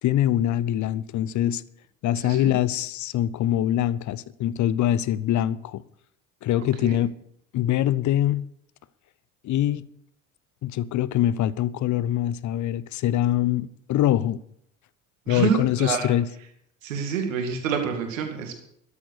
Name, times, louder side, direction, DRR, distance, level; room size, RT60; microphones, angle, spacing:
voice 1, 0.0-1.6 2.0-5.8 6.4-7.1 7.5-8.4 9.4-9.9 10.6-14.4 15.3-16.3, left 12 dB, 50° left, 0.8 m, -24 dB
voice 2, 15.3-16.1 16.8-18.6, right 6 dB, 80° right, 2.3 m, -27 dB
13.5 x 10.0 x 6.7 m
hypercardioid pair, 55°, 38 cm